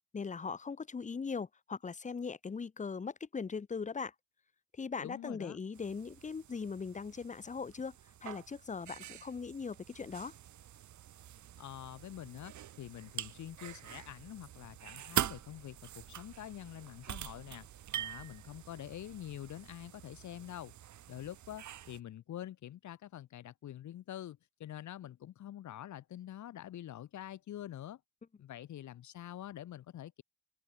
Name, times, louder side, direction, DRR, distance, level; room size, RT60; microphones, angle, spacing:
voice 1, 0.1-4.1 4.8-7.9 8.2-10.3, left 5 dB, 25° left, 1.0 m, -40 dB
voice 2, 5.0-5.6 11.6-17.7 17.9-20.7 21.1-28.0 28.4-30.2, left 12 dB, 70° left, 3.2 m, -46 dB
sound 1, 5.7-22.0, right 11 dB, 70° right, 4.1 m, -44 dB
cardioid pair, 90°, 30 cm